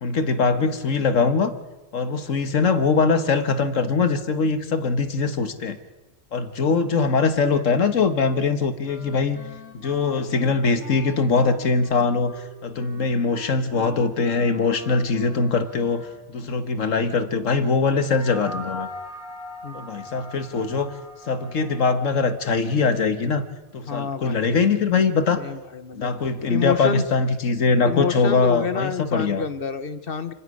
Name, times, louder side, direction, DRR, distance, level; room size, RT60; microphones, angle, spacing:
voice 1, 0.0-1.5 1.9-5.8 6.3-9.4 9.7-12.4 12.6-18.9 19.7-20.9 21.3-23.4 23.7-25.4 26.0-29.4, left 4 dB, 65° left, 10 dB, 1.7 m, -22 dB
Wind instrument woodwind instrument, 8.8-16.4, left 4 dB, 85° left, 3.3 m, -44 dB
sound 1, 17.9-22.6, left 1 dB, ahead, 5.2 m, -39 dB
voice 2, 23.9-24.6 25.4-26.1 26.5-27.0 27.8-30.3, left 6 dB, 45° left, 12 dB, 1.2 m, -28 dB
29.0 x 10.5 x 9.8 m, 1.1 s
omnidirectional pair, 1.4 m